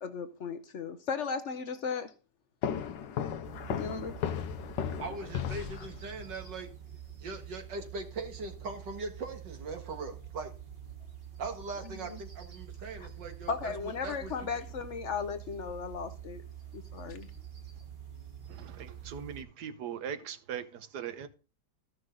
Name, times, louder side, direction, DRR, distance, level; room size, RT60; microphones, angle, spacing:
voice 1, 0.0-2.1 3.8-4.1 13.5-16.4 16.7-17.3, left 5 dB, 55° left, 0.9 m, -36 dB
sound 1, 2.6-6.3, left 8 dB, 90° left, 1.4 m, -35 dB
sound 2, 3.4-19.4, right 9 dB, 35° right, 1.6 m, -47 dB
voice 2, 5.0-6.7 7.2-10.5 11.4-14.6, right 3 dB, 85° right, 2.4 m, -40 dB
voice 3, 18.5-21.3, right 8 dB, 70° right, 1.5 m, -40 dB
14.0 x 6.3 x 3.8 m
omnidirectional pair, 1.9 m